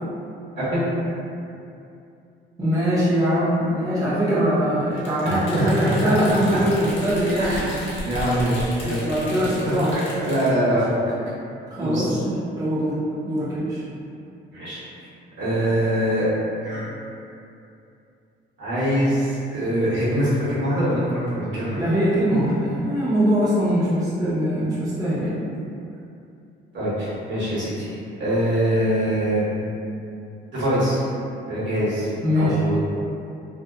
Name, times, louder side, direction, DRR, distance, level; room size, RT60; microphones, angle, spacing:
voice 1, 0.6-0.9 5.2-6.1 6.5-6.6 7.4-9.0 9.6-10.9 11.8-12.2 14.5-14.8 15.4-16.3 16.6-16.8 18.6-21.8 26.7-27.8 28.2-29.4 30.5-31.0 31.5-32.1 32.4-32.8, equal, 70° right, -10 dB, 1.1 m, -23 dB
voice 2, 2.6-7.7 8.8-9.9 11.7-12.3 12.6-13.0 13.2-13.8 21.8-25.4 32.2-32.6, equal, 20° right, -10 dB, 0.6 m, -22 dB
sound 1, 5.0-10.5, equal, 70° left, 0.8 m, -36 dB
2.7 x 2.0 x 2.3 m, 2.6 s
cardioid pair, 90°, 20 cm